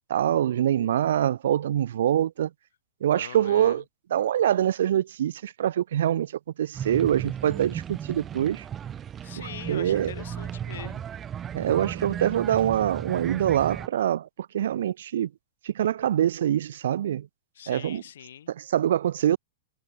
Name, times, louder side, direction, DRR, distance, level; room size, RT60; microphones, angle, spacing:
voice 1, 0.1-2.5 3.0-3.8 4.1-6.3 6.6-8.7 9.4-10.1 11.5-14.3 14.5-15.3 15.6-17.3 17.7-18.0 18.5-19.4, right 11 dB, 70° right, 0.3 m, -24 dB
voice 2, 3.1-3.8 9.2-11.0 17.5-18.5, left 10 dB, 75° left, 0.8 m, -42 dB
sound 1, 6.7-13.9, right 9 dB, 20° right, 1.2 m, -35 dB
hypercardioid pair, 130°, 0 cm